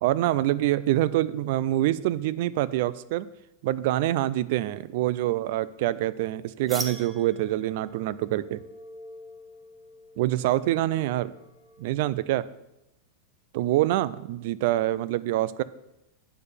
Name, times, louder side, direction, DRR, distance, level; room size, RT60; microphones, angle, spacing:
voice 1, 0.0-3.3 3.6-8.6 10.2-11.3 11.8-12.5 13.5-15.6, right 14 dB, 50° right, 18 dB, 0.4 m, -25 dB
sound 1, 6.7-12.2, equal, 5° right, 0.9 m, -43 dB
8.8 x 6.6 x 5.1 m, 0.90 s
supercardioid pair, 165°, 0 cm